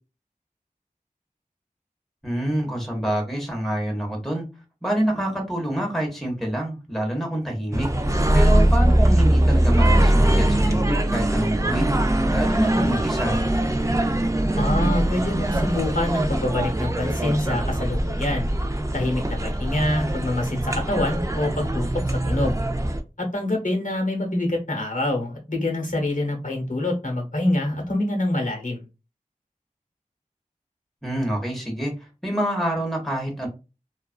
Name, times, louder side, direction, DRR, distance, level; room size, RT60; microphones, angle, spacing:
voice 1, 2.2-4.5 4.8-7.9 8.3-12.0 12.3-13.4 31.0-31.9 32.2-33.5, right 1 dB, ahead, 1 dB, 0.8 m, -26 dB
sound 1, 7.7-23.0, right 1 dB, 20° right, 0.4 m, -21 dB
voice 2, 14.5-18.5 18.9-22.6 23.2-28.8, left 1 dB, 65° left, 1 dB, 0.9 m, -26 dB
2.3 x 2.3 x 2.3 m, 0.29 s
wide cardioid pair, 40°, 14 cm